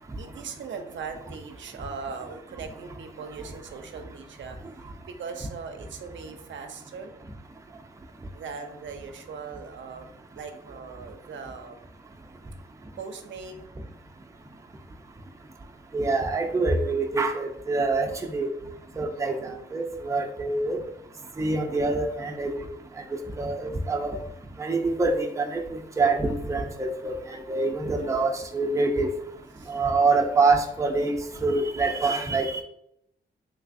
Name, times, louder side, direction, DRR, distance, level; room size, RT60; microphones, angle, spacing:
voice 1, 0.2-4.6 5.1-7.1 8.3-11.9 13.0-13.7 19.4-19.7 21.3-21.5 28.0-28.5 29.6-29.8, right 5 dB, 70° right, 6 dB, 0.5 m, -40 dB
voice 2, 15.9-18.5 19.0-19.3 19.7-20.8 21.4-22.6 23.4-24.2 24.6-25.6 26.0-29.1 29.7-31.1 31.4-32.6, right 3 dB, 15° right, 2 dB, 0.5 m, -25 dB
3.3 x 3.2 x 2.5 m, 0.74 s
cardioid pair, 85°, 20 cm